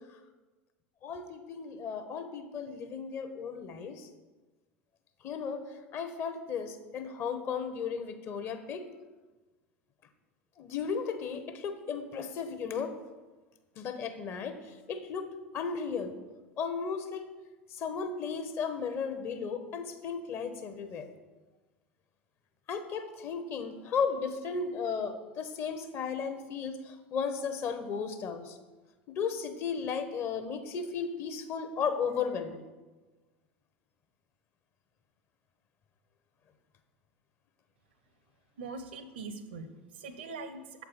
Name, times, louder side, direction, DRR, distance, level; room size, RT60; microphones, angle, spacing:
voice 1, 1.0-4.1 5.2-5.6 5.9-8.8 10.6-13.0 13.8-14.6 14.9-15.3 15.5-16.2 16.6-17.2 17.7-21.1 22.7-28.5 29.1-32.6, left 6 dB, 40° left, 8 dB, 0.7 m, -35 dB
voice 2, 38.6-40.8, right 3 dB, 70° right, 10 dB, 0.6 m, -42 dB
7.2 x 4.6 x 4.0 m, 1.2 s
figure-of-eight pair, 75°, 6 cm